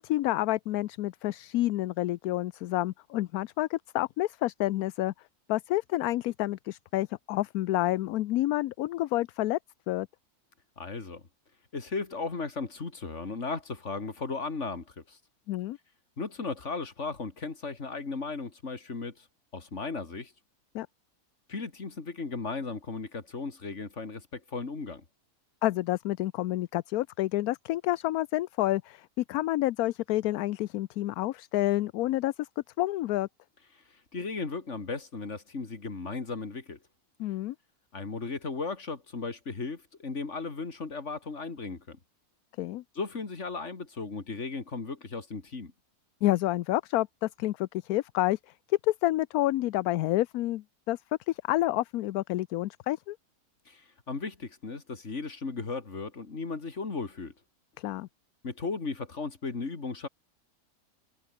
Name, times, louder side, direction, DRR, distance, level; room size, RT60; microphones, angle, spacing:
voice 1, 0.0-5.1 5.5-9.6 9.9-10.1 15.5-15.8 20.7-20.9 25.6-32.5 32.8-33.3 37.2-37.5 42.6-42.8 46.2-48.4 48.8-51.0 51.3-53.2 57.8-58.1, left 16 dB, 75° left, 1.0 m, -29 dB
voice 2, 10.8-11.2 11.7-15.2 16.2-19.1 19.5-20.3 21.5-25.0 34.1-36.8 37.9-42.0 42.9-45.7 53.7-53.8 54.1-57.3 58.4-60.1, left 4 dB, 50° left, 2.9 m, -36 dB
omnidirectional pair, 1.6 m